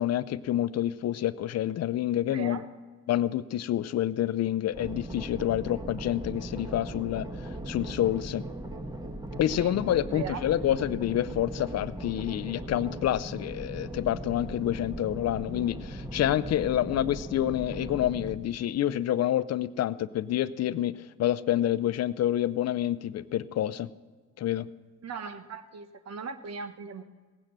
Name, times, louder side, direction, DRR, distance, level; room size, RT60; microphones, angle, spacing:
voice 1, 0.0-2.6 3.1-7.3 7.7-8.4 9.4-23.9 24.4-24.7, left 12 dB, 60° left, 17 dB, 0.5 m, -28 dB
voice 2, 2.3-2.7 9.6-9.8 10.1-10.5 17.9-18.1 25.0-27.0, right 5 dB, 60° right, 10 dB, 1.1 m, -39 dB
sound 1, 4.7-18.4, right 1 dB, 15° right, 1.3 m, -39 dB
17.5 x 9.1 x 7.4 m, 1.5 s
cardioid pair, 90°, 30 cm